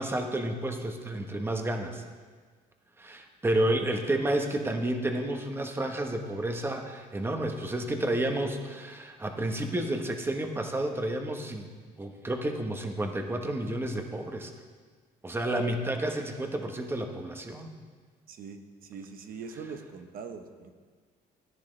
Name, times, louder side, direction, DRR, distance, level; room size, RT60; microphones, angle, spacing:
voice 1, 0.0-2.0 3.0-11.7 12.0-14.5 15.2-17.7, right 1 dB, 15° right, 4 dB, 1.1 m, -30 dB
voice 2, 18.3-20.8, right 5 dB, 60° right, 6 dB, 1.0 m, -42 dB
14.0 x 10.0 x 3.3 m, 1.5 s
cardioid pair, 110°, 17 cm